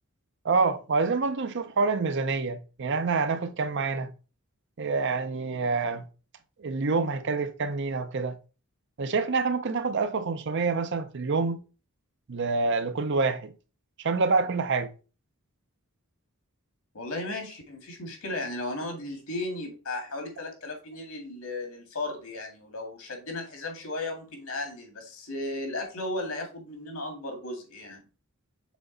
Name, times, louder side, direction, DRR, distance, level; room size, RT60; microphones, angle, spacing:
voice 1, 0.4-4.1 4.8-6.1 6.6-8.4 9.0-11.6 12.3-13.5 14.0-14.9, right 4 dB, 55° right, 0.6 m, -27 dB
voice 2, 16.9-28.0, left 2 dB, 75° left, 2.0 m, -35 dB
6.2 x 3.9 x 3.9 m
head